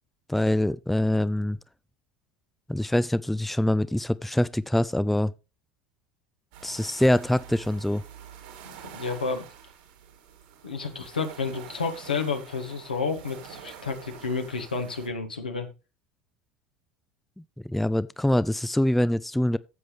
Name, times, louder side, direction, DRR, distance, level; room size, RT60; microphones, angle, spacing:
voice 1, 0.3-1.6 2.7-5.3 6.6-8.0 17.6-19.6, left 1 dB, 5° left, 0.4 m, -24 dB
sound 1, 6.5-15.1, right 8 dB, 65° right, 2.3 m, -47 dB
voice 2, 8.6-9.5 10.6-15.7, left 4 dB, 85° left, 1.8 m, -31 dB
13.5 x 7.6 x 3.3 m
figure-of-eight pair, 70°, 5 cm